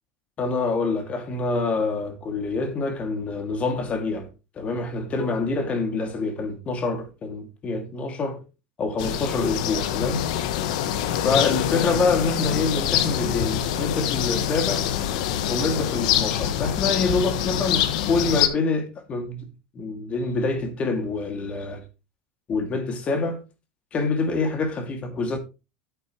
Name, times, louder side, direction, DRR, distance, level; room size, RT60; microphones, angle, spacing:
voice 1, 0.4-4.3 4.5-8.4 8.8-10.3 11.2-14.9 15.5-19.4 19.7-21.8 22.5-23.4 23.9-25.4, left 3 dB, 35° left, 2.5 m, -26 dB
sound 1, 9.0-18.5, left 10 dB, 75° left, 1.1 m, -25 dB
9.3 x 8.2 x 3.2 m
supercardioid pair, 110°, 4 cm